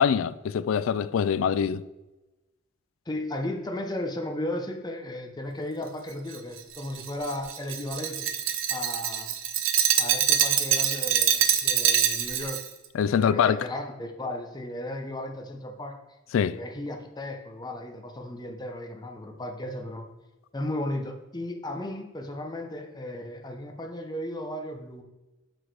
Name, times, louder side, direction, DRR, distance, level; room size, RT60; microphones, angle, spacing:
voice 1, 0.0-1.8 12.9-13.7 16.3-16.6, left 7 dB, 90° left, 0.3 m, -24 dB
voice 2, 3.1-8.3 8.7-9.4 10.0-12.6 13.1-16.0 16.5-20.1 20.5-25.0, left 1 dB, 20° left, 0.8 m, -35 dB
Glass, 6.3-12.7, right 9 dB, 90° right, 0.6 m, -25 dB
6.1 x 4.8 x 4.7 m
head